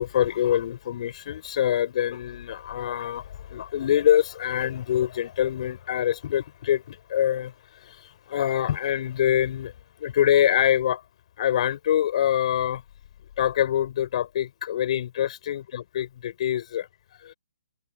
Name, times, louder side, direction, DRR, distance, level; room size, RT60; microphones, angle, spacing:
voice 1, 0.0-3.2 3.5-7.5 8.3-9.7 10.0-11.0 11.4-12.8 13.4-16.9 17.2-17.3, left 11 dB, 45° left, 5.3 m, -24 dB
figure-of-eight pair, 135°, 5 cm